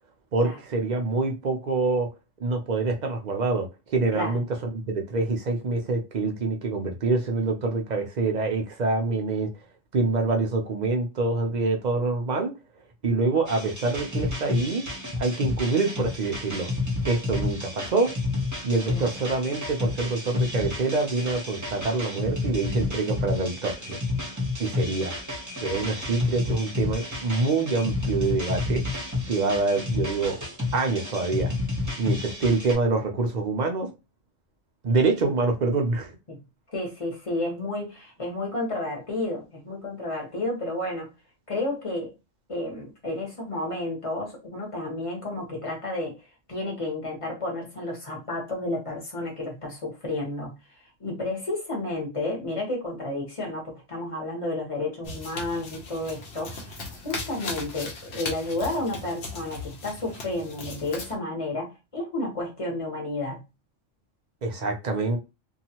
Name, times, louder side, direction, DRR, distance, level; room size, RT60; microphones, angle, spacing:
voice 1, 0.3-2.1 2.4-4.4 4.7-9.5 9.9-12.5 13.0-14.8 15.2-16.7 17.1-18.1 18.6-24.0 24.6-25.1 25.6-28.8 29.3-30.4 30.7-31.5 32.0-33.9 34.8-36.2 64.4-65.2, right 3 dB, 50° right, 0.6 m, -26 dB
sound 1, 13.5-32.7, left 2 dB, 15° right, 0.8 m, -31 dB
voice 2, 36.7-41.1 41.5-42.1 42.5-46.2 46.5-50.6 51.0-63.4, left 2 dB, 25° left, 1.1 m, -31 dB
sound 2, 55.0-61.1, left 3 dB, 60° left, 1.0 m, -38 dB
2.8 x 2.4 x 2.8 m
omnidirectional pair, 1.3 m